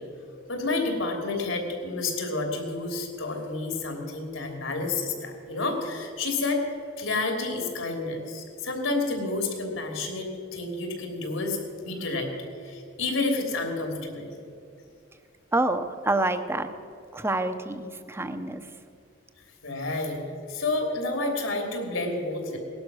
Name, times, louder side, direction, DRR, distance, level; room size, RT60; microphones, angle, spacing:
voice 1, 0.5-6.6 7.0-12.3 12.6-14.4 19.6-20.2 20.5-22.6, left 3 dB, 75° left, 2 dB, 3.2 m, -30 dB
voice 2, 15.5-16.7 17.1-18.7, right 2 dB, 10° right, 8 dB, 0.8 m, -27 dB
19.0 x 11.5 x 6.3 m, 2.5 s
head